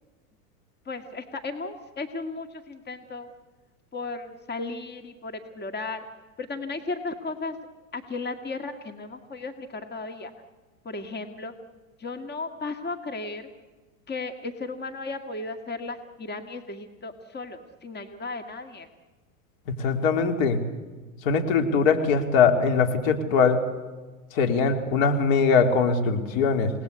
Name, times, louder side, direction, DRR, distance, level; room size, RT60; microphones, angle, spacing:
voice 1, 0.9-3.3 3.9-6.0 6.4-7.6 7.9-10.3 10.8-11.5 12.0-13.5 14.1-18.9, left 3 dB, 25° left, 7 dB, 2.1 m, -35 dB
voice 2, 19.7-20.6 21.2-23.6 24.3-26.7, left 5 dB, 65° left, 5 dB, 3.5 m, -21 dB
29.0 x 19.0 x 8.3 m, 1.3 s
hypercardioid pair, 95°, 43 cm